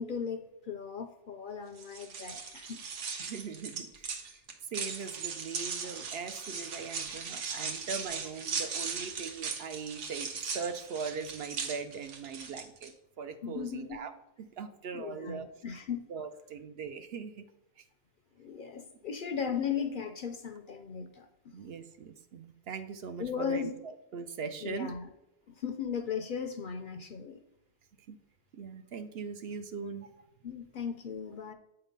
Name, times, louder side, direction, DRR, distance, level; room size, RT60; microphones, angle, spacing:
voice 1, 0.0-2.8 13.4-14.0 14.9-16.1 18.4-21.5 23.2-23.7 24.6-25.1 25.6-27.4 30.4-31.5, left 7 dB, 55° left, 7 dB, 0.6 m, -37 dB
sound 1, 1.8-12.9, right 5 dB, 85° right, 1.2 m, -38 dB
voice 2, 3.2-4.1 4.7-15.5 16.1-17.5 17.8-17.9 21.5-25.0 28.1-28.2 28.5-30.2, right 5 dB, 65° right, 9 dB, 0.8 m, -40 dB
8.0 x 3.9 x 5.2 m, 0.90 s
omnidirectional pair, 1.2 m